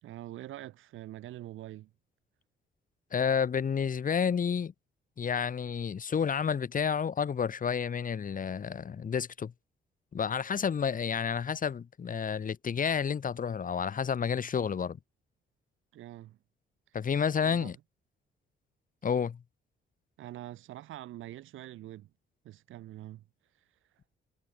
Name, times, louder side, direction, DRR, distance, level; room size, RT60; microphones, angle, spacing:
voice 1, 0.0-1.9 15.9-16.4 16.9-17.0 17.4-17.7 20.2-22.1 22.4-23.2, right 14 dB, 85° right, 3.5 m, -44 dB
voice 2, 3.1-4.7 5.2-9.5 10.1-15.0 16.9-17.8 19.0-19.4, left 7 dB, 45° left, 1.9 m, -30 dB
cardioid pair, 90°, 20 cm